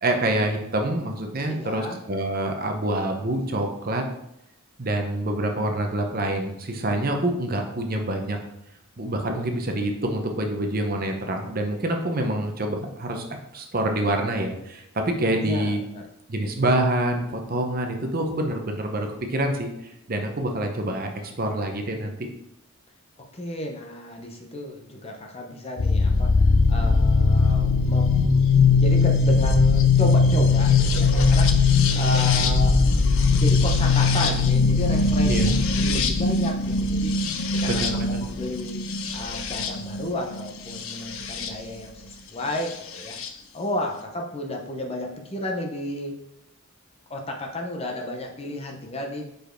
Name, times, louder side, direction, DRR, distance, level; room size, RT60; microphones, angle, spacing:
voice 1, 0.0-4.0 4.8-8.4 9.0-13.2 13.5-15.8 16.3-22.2 35.2-35.6 37.7-38.2, right 1 dB, 40° right, 4 dB, 0.8 m, -26 dB
voice 2, 1.4-2.0 15.4-16.1 23.3-32.8 33.4-35.4 35.8-38.8 39.1-43.2 43.5-46.2 47.1-49.3, left 1 dB, 25° left, 1 dB, 0.7 m, -32 dB
sound 1, 25.8-41.5 42.7-43.3, left 4 dB, 60° left, 0.6 m, -20 dB
5.1 x 4.5 x 4.5 m, 0.82 s
head